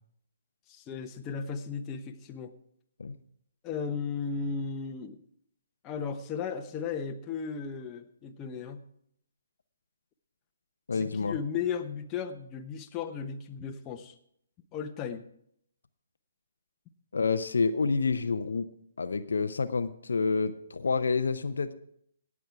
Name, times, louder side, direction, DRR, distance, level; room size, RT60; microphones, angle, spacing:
voice 1, 0.7-2.5 3.6-5.2 5.8-8.8 10.9-14.1 14.7-15.2, left 6 dB, 20° left, 6 dB, 0.9 m, -35 dB
voice 2, 10.9-11.3 17.1-18.7 19.0-21.7, left 4 dB, 70° left, 10 dB, 0.7 m, -28 dB
18.0 x 7.3 x 4.7 m, 0.70 s
figure-of-eight pair, 135°, 0 cm